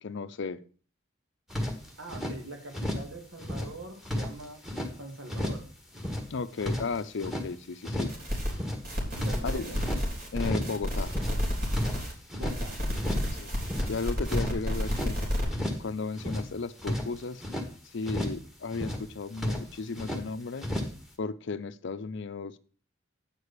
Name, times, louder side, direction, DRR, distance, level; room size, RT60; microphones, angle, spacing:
voice 1, 0.0-0.6 6.3-8.1 9.4-9.7 10.3-11.1 13.3-13.5 13.9-15.2 15.5-17.4 17.9-20.7 21.2-22.6, left 4 dB, 60° left, 14 dB, 0.5 m, -35 dB
sound 1, 1.5-2.4 2.7-3.1 3.4-4.9 5.3-5.7 5.9-7.5 7.8-8.2 8.5-10.0 10.4-10.8 11.0-12.6 12.9-13.3 13.6-15.1 15.5-15.9 16.1-17.7 18.0-18.4 18.7-19.1 19.3-20.2 20.6-21.0, left 1 dB, ahead, 1.4 m, -33 dB
voice 2, 2.0-4.6 5.0-5.6 9.2-9.8 12.3-12.8 13.0-13.3, right 2 dB, 80° right, 4 dB, 2.0 m, -43 dB
sound 2, 8.1-8.5 8.8-12.1 12.4-15.4, equal, 50° right, 3.4 m, -31 dB
8.9 x 4.8 x 6.6 m, 0.40 s
head